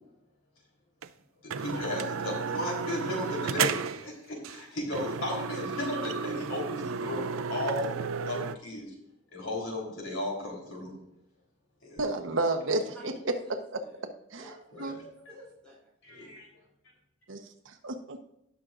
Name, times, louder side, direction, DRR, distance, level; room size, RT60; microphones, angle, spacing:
sound 1, 1.0-1.1 1.5-4.1 4.4-4.6 4.9-8.5, right 6 dB, 90° right, 0.5 m, -33 dB
voice 1, 1.4-8.9 9.3-10.9 11.8-12.1 14.4-14.9 16.0-16.5, left 1 dB, 70° left, -1 dB, 3.7 m, -35 dB
voice 2, 12.0-13.3 13.7-13.8 14.3-14.5 14.8-14.9 17.3-18.2, right 2 dB, 70° right, 4 dB, 1.1 m, -31 dB
voice 3, 12.7-14.0 14.3-15.9, equal, 5° left, -7 dB, 3.4 m, -49 dB
18.0 x 6.2 x 2.6 m, 0.79 s
head